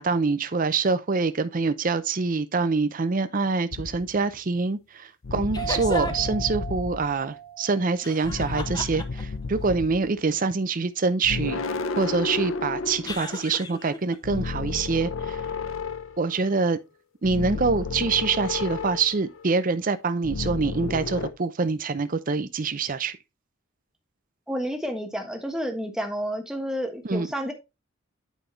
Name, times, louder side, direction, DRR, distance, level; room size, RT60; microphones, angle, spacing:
voice 1, 0.0-11.6 12.0-15.4 16.2-16.8 17.2-23.2 27.0-27.3, right 4 dB, 40° right, 0.6 m, -25 dB
sound 1, 3.7-4.2 5.2-7.1 8.2-10.2 11.2-13.7 14.2-16.5 17.2-19.5 20.2-21.3, left 4 dB, 80° left, 0.7 m, -32 dB
sound 2, 5.5-6.4 8.0-9.4 13.0-14.2, left 2 dB, 20° left, 0.9 m, -34 dB
sound 3, 5.6-8.9, right 10 dB, 75° right, 1.1 m, -38 dB
voice 2, 24.5-27.5, equal, 5° right, 1.3 m, -30 dB
9.2 x 5.3 x 3.1 m
head